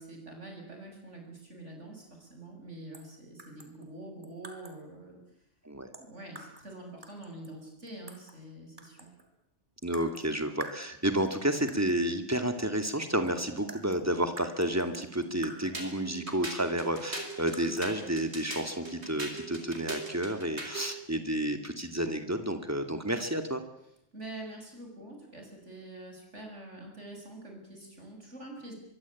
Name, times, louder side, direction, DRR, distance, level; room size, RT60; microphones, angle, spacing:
voice 1, 0.0-5.2 6.0-9.1 24.1-28.7, right 2 dB, 80° right, 2 dB, 7.6 m, -46 dB
sound 1, 2.9-3.1 3.4-4.9 5.9-6.7 7.0-8.4 8.8-9.3 9.9-10.3 10.6-11.3 11.7-12.0 12.9-13.0 13.3-15.9 17.2-17.9, right 2 dB, 45° right, 3.3 m, -48 dB
voice 2, 9.8-23.6, right 1 dB, 15° right, 7 dB, 2.6 m, -31 dB
sound 2, 15.7-20.9, right 2 dB, 65° right, 5.1 m, -40 dB
24.0 x 23.5 x 8.7 m, 0.76 s
omnidirectional pair, 1.2 m